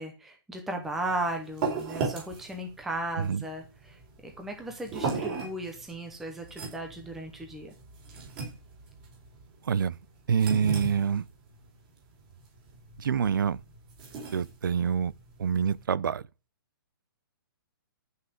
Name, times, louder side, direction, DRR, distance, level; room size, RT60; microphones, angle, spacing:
voice 1, 0.0-7.7, right 1 dB, ahead, 0.8 m, -36 dB
sound 1, 0.8-15.8, right 4 dB, 20° right, 4.6 m, -38 dB
voice 2, 9.6-10.0 10.3-11.2 13.0-13.6 14.3-15.1 15.4-16.2, right 7 dB, 60° right, 0.6 m, -26 dB
13.5 x 5.7 x 7.9 m
hypercardioid pair, 180°, 12 cm